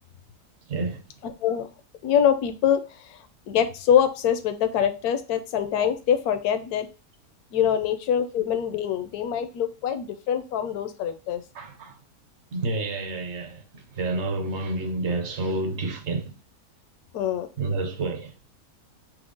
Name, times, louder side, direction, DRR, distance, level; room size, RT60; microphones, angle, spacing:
voice 1, 0.7-1.0 11.5-12.0 12.5-16.4 17.6-18.3, right 2 dB, 55° right, 1.0 m, -29 dB
voice 2, 2.0-3.2 3.5-6.9 7.5-11.4 17.1-17.5, left 9 dB, 85° left, 1.1 m, -24 dB
6.1 x 2.1 x 3.8 m
omnidirectional pair, 1.6 m